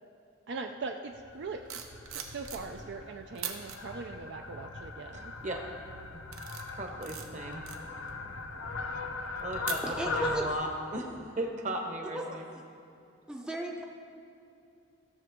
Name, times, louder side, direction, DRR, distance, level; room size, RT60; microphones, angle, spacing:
voice 1, 0.5-1.8 2.1-5.3, right 4 dB, 55° right, 4 dB, 0.4 m, -41 dB
Fowl, 1.1-10.5, left 3 dB, 85° left, 0.9 m, -39 dB
sound 1, 1.4-3.0 3.3-3.8 4.4-4.8 5.2-5.6 6.0-10.3 10.6-10.9, right 8 dB, 80° right, 0.9 m, -42 dB
voice 2, 5.1-5.6 6.1-6.2 6.7-7.6 9.4-11.1 11.4-12.4, right 1 dB, 35° right, 3 dB, 1.0 m, -36 dB
voice 3, 9.8-10.5 12.1-12.2 12.5-12.6 13.3-13.8, right 1 dB, 5° right, 1 dB, 0.6 m, -36 dB
16.0 x 6.8 x 3.6 m, 2.7 s
head